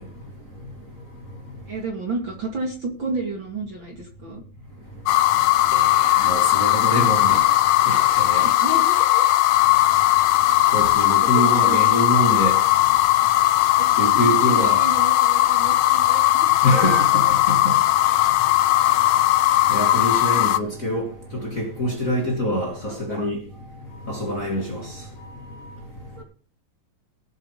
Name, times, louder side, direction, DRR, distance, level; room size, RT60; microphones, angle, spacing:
voice 1, 1.7-4.4 8.3-9.3 11.2-11.8 13.8-16.5 22.9-23.3 26.2-26.3, right 3 dB, 35° right, 2.6 m, -32 dB
sound 1, 5.1-20.6, left 15 dB, 80° left, 2.3 m, -18 dB
voice 2, 5.7-7.5 7.9-8.5 10.7-12.6 14.0-14.8 16.6-17.8 19.7-21.1 21.4-23.4 24.1-24.8, equal, 25° left, 2.8 m, -25 dB
18.0 x 8.3 x 5.0 m
omnidirectional pair, 4.0 m